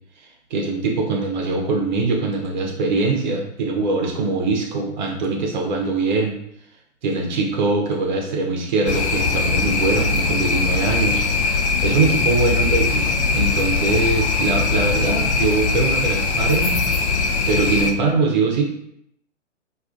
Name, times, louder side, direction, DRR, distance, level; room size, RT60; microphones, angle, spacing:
voice 1, 0.5-6.4 7.0-16.9 17.5-18.6, right 3 dB, 40° right, 1 dB, 0.6 m, -22 dB
sound 1, 8.9-17.9, left 4 dB, 65° left, 0.5 m, -21 dB
2.3 x 2.2 x 2.4 m, 0.74 s
figure-of-eight pair, 120°, 37 cm